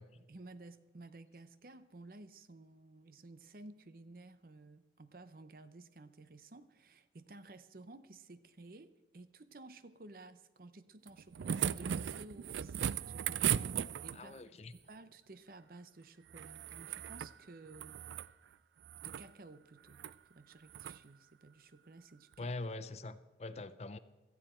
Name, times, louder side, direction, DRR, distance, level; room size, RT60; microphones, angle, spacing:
voice 1, 0.2-14.4 14.7-18.0 19.0-22.5, right 2 dB, 55° right, 13 dB, 0.7 m, -54 dB
sound 1, 11.1-14.4 16.3-17.3 17.7-18.3 18.8-19.3 19.9-20.1 20.7-21.0 22.3-22.4, right 9 dB, 90° right, 0.4 m, -37 dB
voice 2, 14.1-14.7 22.4-24.0, left 2 dB, 35° left, 13 dB, 0.5 m, -43 dB
16.5 x 14.0 x 4.4 m, 1.1 s
head